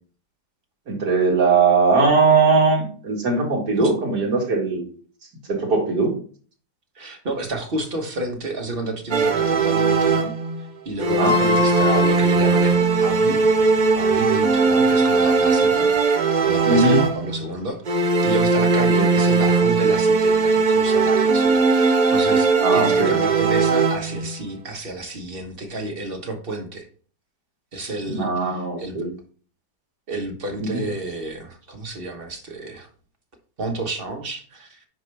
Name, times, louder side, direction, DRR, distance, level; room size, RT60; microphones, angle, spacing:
voice 1, 0.9-4.9 5.5-6.1 11.1-11.4 16.6-17.0 19.0-19.1 22.6-23.2 28.1-29.1 30.6-30.9, right 4 dB, 65° right, 0 dB, 2.5 m, -20 dB
voice 2, 6.9-10.3 10.8-13.5 13.9-15.9 16.4-26.9 27.7-29.1 30.1-32.9 33.6-34.8, right 2 dB, 35° right, 2 dB, 1.4 m, -31 dB
sound 1, 9.1-10.6 11.0-17.4 17.8-24.3, right 4 dB, 90° right, 0.4 m, -19 dB
sound 2, 11.1-16.1, left 8 dB, 70° left, 1.4 m, -31 dB
9.5 x 4.9 x 3.4 m, 0.43 s
omnidirectional pair, 1.9 m